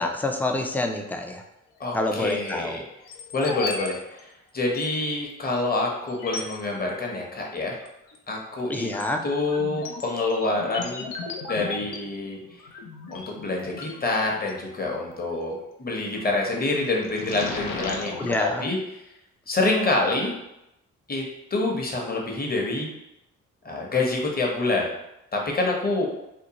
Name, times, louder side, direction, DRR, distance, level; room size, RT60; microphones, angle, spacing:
voice 1, 0.0-1.4 1.9-2.8 8.7-9.2 18.2-18.6, left 2 dB, 5° left, 4 dB, 0.3 m, -27 dB
voice 2, 1.8-2.8 3.3-7.8 8.3-8.9 9.2-11.1 11.5-12.4 13.1-19.0 19.5-20.3 21.1-21.3 21.5-22.9 23.6-24.9 25.3-26.1, left 2 dB, 30° left, -1 dB, 0.8 m, -27 dB
sound 1, 2.0-2.5 3.1-3.9 4.2-4.3 4.7-4.8 5.6-5.7 6.1-6.6 7.8-8.2 8.6-14.5 16.1-16.5 16.9-18.4, left 4 dB, 80° left, 0.5 m, -36 dB
2.6 x 2.1 x 2.9 m, 0.88 s
supercardioid pair, 50°, 33 cm